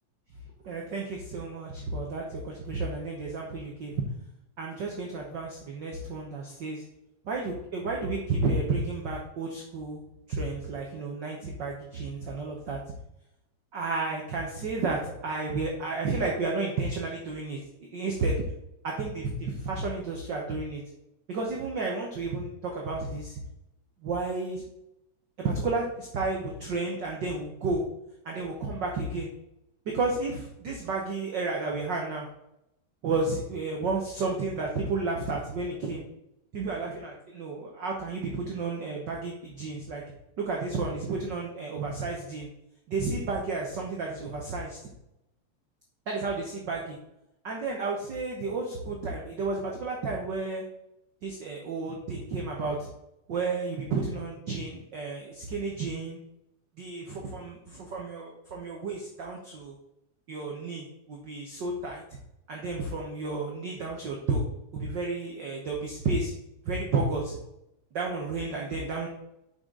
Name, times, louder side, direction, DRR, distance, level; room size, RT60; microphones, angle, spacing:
voice 1, 0.6-4.0 4.6-6.8 7.2-10.0 10.3-12.8 13.7-18.4 18.8-20.8 21.3-23.4 24.0-24.6 25.4-27.8 28.2-29.3 29.8-32.3 33.0-36.0 36.5-40.0 40.4-42.5 42.9-44.8 46.1-47.0 47.4-50.6 51.2-52.9 53.3-56.2 56.8-59.7 60.3-62.0 62.5-64.4 64.7-66.3 66.6-67.4 67.9-69.1, right 3 dB, 60° right, -1 dB, 1.2 m, -32 dB
7.5 x 5.8 x 3.9 m, 0.85 s
omnidirectional pair, 3.4 m